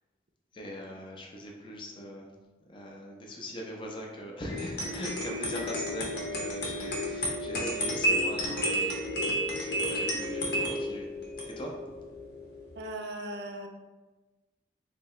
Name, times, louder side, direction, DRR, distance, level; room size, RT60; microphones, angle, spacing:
voice 1, 0.5-2.3 2.7-11.1 11.5-11.7, equal, 25° left, -1 dB, 0.5 m, -41 dB
sound 1, 4.5-12.8, equal, 65° left, 0.8 m, -32 dB
voice 2, 12.8-13.7, right 1 dB, 70° right, 4 dB, 0.5 m, -38 dB
3.4 x 2.8 x 3.1 m, 1.2 s
head